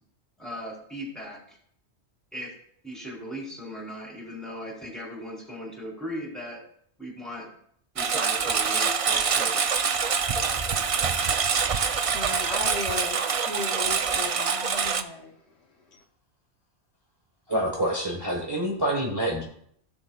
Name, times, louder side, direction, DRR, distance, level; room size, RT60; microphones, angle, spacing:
voice 1, 0.4-1.6 2.3-2.5 2.8-6.6 7.0-7.5 7.9-9.9, equal, ahead, -3 dB, 3.5 m, -38 dB
Engine, 8.0-15.0, right 6 dB, 55° right, 0.4 m, -25 dB
voice 2, 12.1-15.3, left 3 dB, 65° left, 1 dB, 1.3 m, -36 dB
voice 3, 17.5-19.4, right 1 dB, 20° right, -1 dB, 1.2 m, -27 dB
16.0 x 6.8 x 2.3 m, 0.65 s
omnidirectional pair, 1.2 m